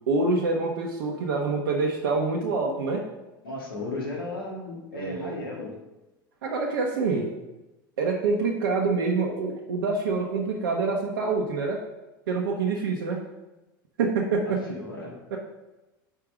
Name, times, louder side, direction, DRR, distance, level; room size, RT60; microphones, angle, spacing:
voice 1, 0.1-3.1 4.9-5.4 6.4-7.3 8.0-11.8 12.3-13.2 14.0-14.6 15.3-15.4, right 4 dB, 80° right, 0 dB, 0.8 m, -26 dB
voice 2, 3.4-5.8 14.5-15.2, left 2 dB, 90° left, -2 dB, 1.8 m, -35 dB
5.0 x 4.5 x 6.1 m, 1.0 s
hypercardioid pair, 85°, 12 cm